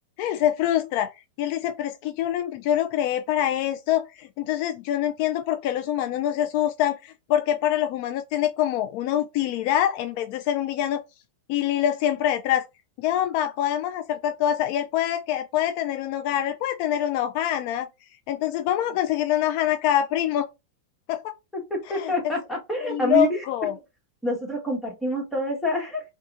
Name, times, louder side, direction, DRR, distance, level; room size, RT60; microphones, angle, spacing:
voice 1, 0.2-1.1 1.4-11.0 11.5-12.7 13.0-17.9 18.3-20.5 21.1-21.3 21.9-22.1 22.8-23.7, left 11 dB, 50° left, 0.4 m, -25 dB
voice 2, 21.5-23.3 24.2-26.0, equal, 5° left, 1.5 m, -27 dB
5.3 x 2.3 x 2.5 m
supercardioid pair, 130°, 0 cm